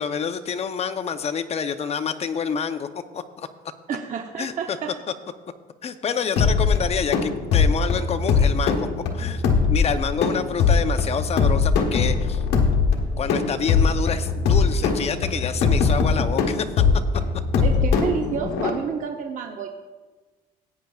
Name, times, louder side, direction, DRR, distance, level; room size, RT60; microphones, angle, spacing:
voice 1, 0.0-2.9 3.1-3.5 4.4-4.8 5.8-8.9 9.1-9.4 9.7-12.4 13.2-16.7, left 6 dB, 40° left, 10 dB, 0.7 m, -27 dB
voice 2, 3.9-4.9 17.6-19.7, right 7 dB, 50° right, 3 dB, 0.8 m, -29 dB
sound 1, 6.4-18.7, left 5 dB, 80° left, 1.4 m, -21 dB
16.5 x 9.1 x 2.4 m, 1.3 s
cardioid pair, 110°, 17 cm